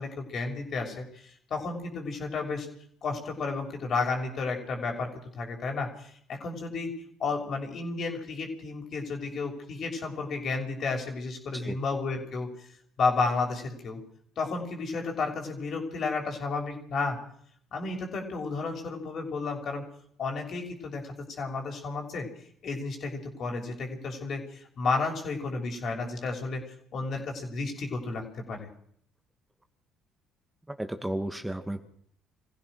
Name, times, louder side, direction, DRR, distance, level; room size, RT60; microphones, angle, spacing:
voice 1, 0.0-2.7 3.0-5.1 5.4-6.9 7.2-12.5 13.0-14.0 14.4-17.2 17.7-19.8 20.2-22.3 22.6-26.6 26.9-28.7, left 4 dB, 55° left, 3 dB, 6.6 m, -32 dB
voice 2, 30.7-31.8, right 1 dB, 10° right, 6 dB, 2.4 m, -33 dB
25.5 x 16.0 x 6.5 m, 0.63 s
hypercardioid pair, 60°, 0 cm